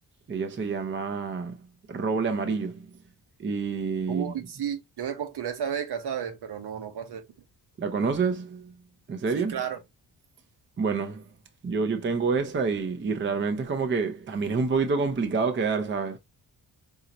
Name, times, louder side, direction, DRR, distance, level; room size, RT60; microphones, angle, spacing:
voice 1, 0.3-1.6 1.9-2.9 3.4-4.3 7.8-8.7 9.1-9.6 10.8-11.3 11.6-16.2, right 4 dB, 30° right, 0.6 m, -27 dB
voice 2, 4.1-7.2 9.3-9.8, right 8 dB, 70° right, 1.0 m, -32 dB
5.1 x 2.8 x 2.9 m
wide cardioid pair, 135°, 42 cm